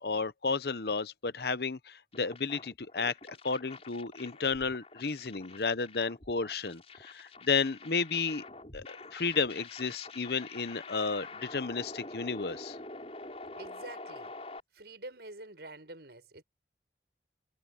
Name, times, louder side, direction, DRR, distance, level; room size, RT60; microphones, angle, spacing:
voice 1, 0.0-3.1 3.4-8.4 8.7-12.8, left 4 dB, 60° left, 0.8 m, -32 dB
sound 1, 2.1-14.6, left 2 dB, 35° left, 6.0 m, -47 dB
voice 2, 13.4-14.3 14.7-16.4, right 2 dB, 65° right, 6.9 m, -47 dB
head